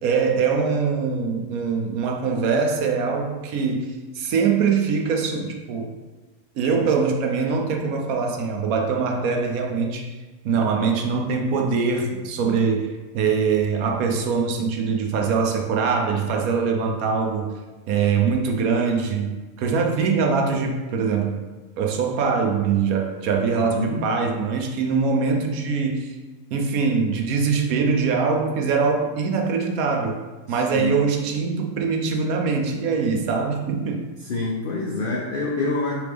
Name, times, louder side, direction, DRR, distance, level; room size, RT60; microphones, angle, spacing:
voice 1, 0.0-5.9 6.6-10.1 10.4-12.9 13.1-17.5 17.9-21.4 21.8-26.2 26.5-30.1 30.5-34.1, right 5 dB, 75° right, 2 dB, 1.1 m, -23 dB
voice 2, 23.5-24.1 30.5-31.0 34.2-36.0, left 3 dB, 70° left, -1 dB, 0.5 m, -27 dB
4.9 x 3.1 x 3.4 m, 1.2 s
omnidirectional pair, 1.5 m